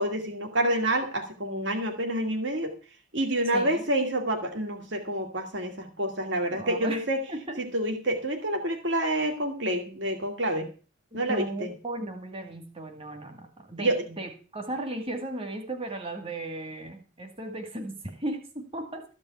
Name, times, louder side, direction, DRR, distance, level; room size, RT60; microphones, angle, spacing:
voice 1, 0.0-2.7 3.1-7.2 7.6-10.7 11.1-11.7 13.8-14.0, right 1 dB, 65° right, 4 dB, 2.4 m, -28 dB
voice 2, 3.5-3.8 6.5-7.0 7.3-7.6 11.3-19.0, right 2 dB, 30° right, 4 dB, 2.1 m, -36 dB
14.5 x 5.4 x 9.4 m, 0.36 s
head